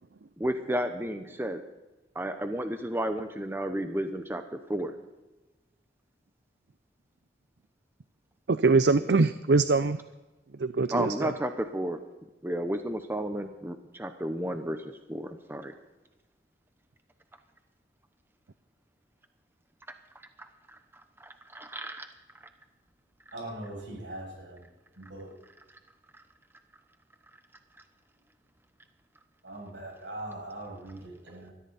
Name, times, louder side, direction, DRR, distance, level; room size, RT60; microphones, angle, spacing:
voice 1, 0.4-1.6 2.1-4.9 10.9-12.0 12.4-15.7 20.4-20.5 21.2-22.1, right 1 dB, 15° right, 7 dB, 0.9 m, -32 dB
voice 2, 8.5-10.0 10.6-11.3, right 3 dB, 70° right, 12 dB, 0.6 m, -23 dB
voice 3, 23.3-24.6 25.0-25.3 29.4-31.5, right 1 dB, 90° right, 0 dB, 7.2 m, -41 dB
21.0 x 14.0 x 4.2 m, 1.1 s
head